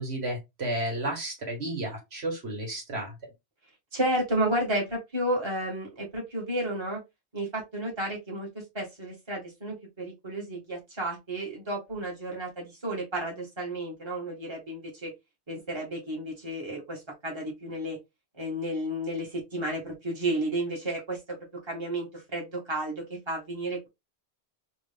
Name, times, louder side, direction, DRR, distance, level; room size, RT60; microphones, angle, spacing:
voice 1, 0.0-3.1, right 1 dB, 75° right, 1.7 m, -32 dB
voice 2, 3.9-7.0 7.3-8.5 8.7-15.1 15.5-18.0 18.4-21.2 21.7-23.9, right 1 dB, 25° right, 1.6 m, -32 dB
3.5 x 2.5 x 3.4 m
omnidirectional pair, 1.1 m